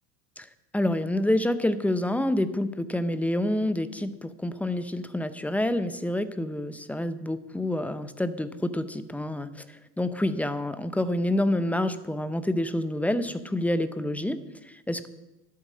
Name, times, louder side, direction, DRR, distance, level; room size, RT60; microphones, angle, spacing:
voice 1, 0.7-15.1, left 1 dB, 5° left, 12 dB, 0.6 m, -28 dB
12.0 x 8.5 x 7.2 m, 0.98 s
hypercardioid pair, 90°, 49 cm